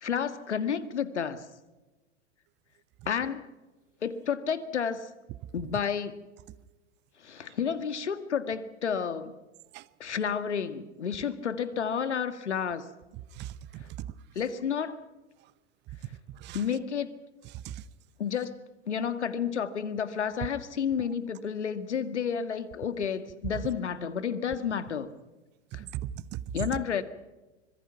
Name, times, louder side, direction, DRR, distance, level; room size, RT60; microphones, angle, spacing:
voice 1, 0.0-1.4 3.1-3.5 4.0-5.1 5.5-6.2 7.2-9.3 10.0-12.9 14.4-15.0 16.5-17.1 18.2-18.6 18.9-25.1 25.7-25.8 26.5-27.0, left 7 dB, 75° left, 1.9 m, -31 dB
voice 2, 13.1-14.1 15.4-15.5 16.3-16.6 17.4-17.8 25.7-26.8, right 11 dB, 30° right, 1.0 m, -38 dB
25.5 x 22.5 x 5.8 m
figure-of-eight pair, 100°, 34 cm